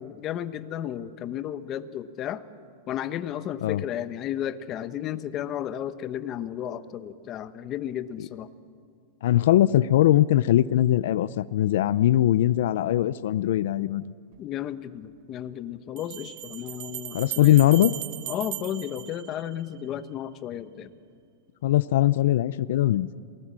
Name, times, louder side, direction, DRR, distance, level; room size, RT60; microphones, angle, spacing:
voice 1, 0.0-2.4 2.9-8.5 14.4-17.7 18.3-20.9, left 10 dB, 30° left, 13 dB, 0.9 m, -33 dB
voice 2, 9.2-14.0 17.1-17.9 21.6-23.1, left 13 dB, 70° left, 17 dB, 0.5 m, -21 dB
Bell, 14.3-14.4 16.0-19.9, right 19 dB, 50° right, 0.7 m, -38 dB
27.5 x 19.0 x 7.5 m, 2.2 s
supercardioid pair, 155°, 0 cm